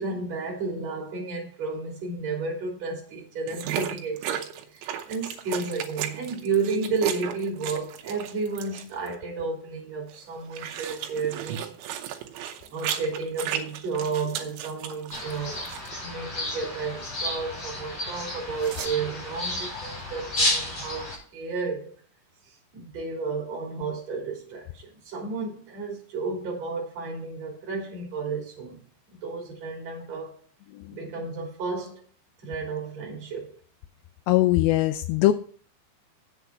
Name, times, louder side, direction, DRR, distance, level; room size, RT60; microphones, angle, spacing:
voice 1, 0.0-4.4 4.7-11.9 12.7-15.7 16.0-21.9 22.7-28.9 29.2-30.4 30.9-32.0 32.4-33.6, right 4 dB, 40° right, 4.0 m, -32 dB
sound 1, 3.5-9.1 10.1-15.4 15.7-15.9 18.6-18.9, right 10 dB, 90° right, 3.2 m, -34 dB
sound 2, 15.1-21.2, left 1 dB, 25° left, 4.6 m, -31 dB
voice 2, 34.3-35.3, left 16 dB, 85° left, 2.7 m, -21 dB
8.1 x 7.3 x 5.7 m
omnidirectional pair, 5.1 m